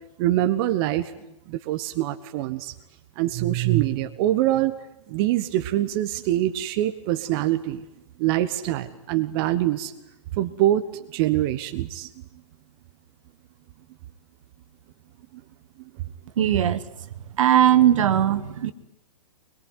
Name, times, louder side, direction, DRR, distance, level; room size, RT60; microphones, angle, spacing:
voice 1, 0.2-1.1 1.5-2.7 3.2-4.7 5.1-7.8 8.2-9.9 10.4-12.1, right 14 dB, 40° right, 9 dB, 1.3 m, -24 dB
voice 2, 16.4-16.8 17.4-18.7, right 10 dB, 55° right, 12 dB, 1.5 m, -19 dB
23.0 x 22.0 x 9.8 m, 0.84 s
figure-of-eight pair, 120°, 20 cm